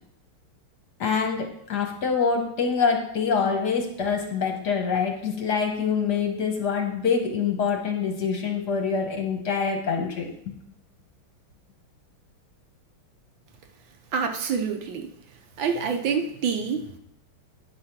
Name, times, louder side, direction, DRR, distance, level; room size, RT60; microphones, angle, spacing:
voice 1, 1.0-10.3, left 5 dB, 55° left, 2 dB, 1.5 m, -25 dB
voice 2, 14.1-15.1 15.6-17.0, right 6 dB, 70° right, 5 dB, 1.4 m, -27 dB
9.6 x 5.0 x 5.8 m, 0.75 s
omnidirectional pair, 2.4 m